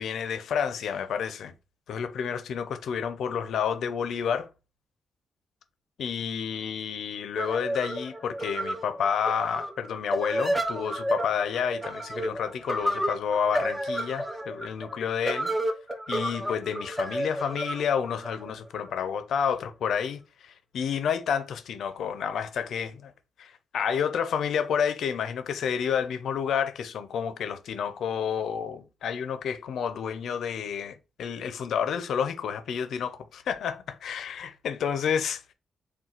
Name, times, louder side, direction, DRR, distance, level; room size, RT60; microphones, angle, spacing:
voice 1, 0.0-1.5 1.9-4.5 6.0-15.5 16.1-23.1 23.4-35.5, left 7 dB, 75° left, 0.5 m, -30 dB
sound 1, 7.4-19.0, right 1 dB, 5° right, 0.6 m, -31 dB
3.9 x 2.2 x 4.3 m
cardioid pair, 100°, 0 cm